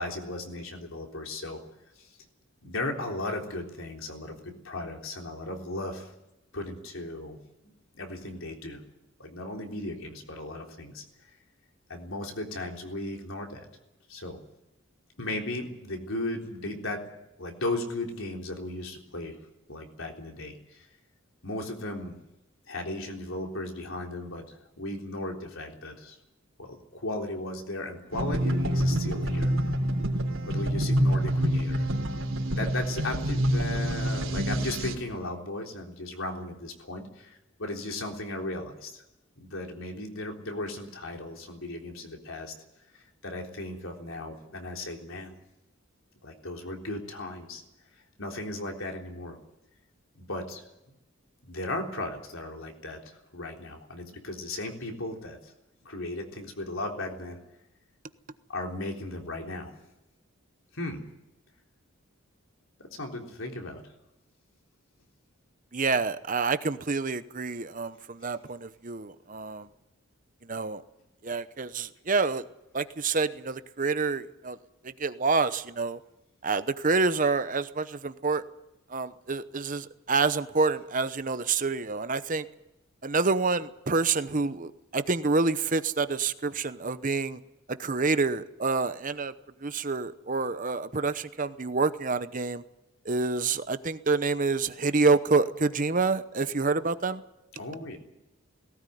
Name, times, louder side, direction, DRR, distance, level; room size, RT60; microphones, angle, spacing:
voice 1, 0.0-1.6 2.0-2.1 2.6-6.1 6.5-7.4 7.6-8.8 9.2-11.0 11.9-13.7 14.1-14.4 15.2-17.0 17.4-19.4 19.7-20.9 21.4-22.2 22.7-26.2 26.6-29.5 30.5-31.9 32.5-39.0 39.4-42.5 42.9-45.3 46.2-47.6 48.2-49.4 50.2-50.6 51.4-55.5 55.8-57.4 58.5-59.7 60.7-61.0 62.8-63.8 97.5-98.0, left 2 dB, 70° left, 2 dB, 3.6 m, -36 dB
sound 1, 28.1-34.9, equal, 70° right, 3.7 m, -27 dB
voice 2, 65.7-69.7 70.5-70.8 71.2-72.4 72.7-74.6 74.8-76.0 76.4-78.4 78.9-82.5 83.0-87.4 87.8-89.3 89.6-92.6 93.0-97.2, right 4 dB, 40° right, 12 dB, 0.8 m, -27 dB
19.0 x 17.5 x 9.3 m, 0.92 s
head